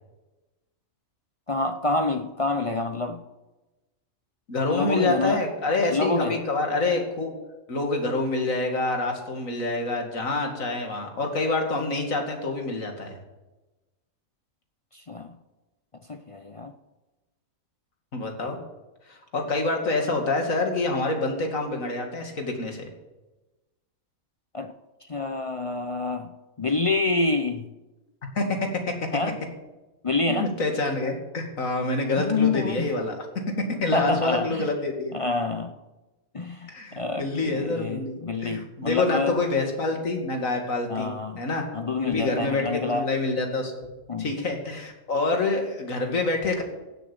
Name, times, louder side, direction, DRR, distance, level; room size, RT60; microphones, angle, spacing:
voice 1, 1.5-3.2 4.7-5.4 5.9-6.4 14.9-15.4 16.1-16.7 24.5-24.7 25.1-26.3 26.6-27.7 29.1-29.4 30.0-30.5 32.2-32.9 33.9-34.7 35.1-35.8 36.3-39.4 40.9-41.5 41.7-43.1 44.1-44.3, left 3 dB, 40° left, 8 dB, 0.4 m, -27 dB
voice 2, 4.5-7.4 7.7-13.2 18.1-18.6 19.1-22.9 28.3-28.9 30.3-33.1 33.6-35.1 36.7-41.1 41.4-41.7 42.0-46.6, left 2 dB, 70° left, 3 dB, 2.6 m, -27 dB
16.5 x 7.6 x 7.2 m, 1.1 s
omnidirectional pair, 1.5 m